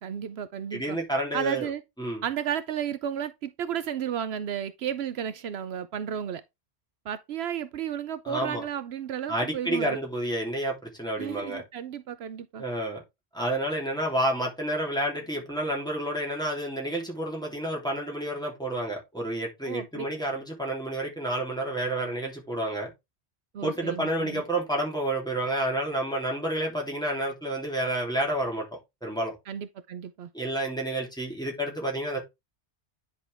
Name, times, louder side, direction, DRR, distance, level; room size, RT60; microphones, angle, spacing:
voice 1, 0.0-1.0 1.3-1.8 2.2-6.4 7.1-10.0 11.2-12.6 19.7-20.0 23.5-24.4 29.5-30.3, right 9 dB, 75° right, 0.8 m, -33 dB
voice 2, 0.7-1.7 2.0-2.2 8.2-8.6 9.3-11.6 12.6-13.0 13.3-22.9 23.6-28.7 29.0-29.3 30.3-32.2, right 1 dB, 5° left, 3.0 m, -30 dB
10.0 x 4.4 x 3.4 m
omnidirectional pair, 1.1 m